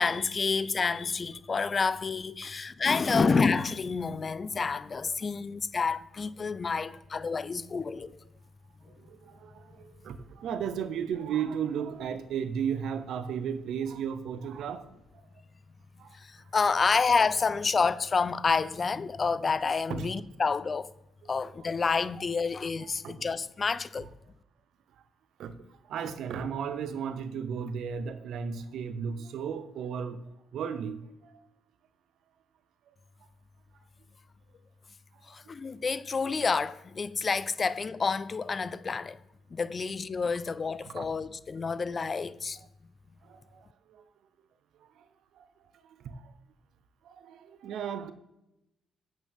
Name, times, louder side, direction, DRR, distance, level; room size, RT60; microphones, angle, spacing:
voice 1, 0.0-8.2 16.1-20.9 21.3-24.1 35.3-39.2 39.5-42.6, left 4 dB, 35° left, 0.4 m, -29 dB
voice 2, 9.0-14.8 16.0-16.2 19.9-20.2 21.2-21.3 21.6-21.7 23.0-23.2 25.4-25.6 25.9-30.2 30.5-31.3 40.9-41.0 43.2-44.0 45.0-45.1 45.4-45.5 46.0-46.2 47.0-48.1, right 7 dB, 75° right, 0.7 m, -35 dB
8.9 x 8.4 x 3.5 m
cardioid pair, 90°, 0 cm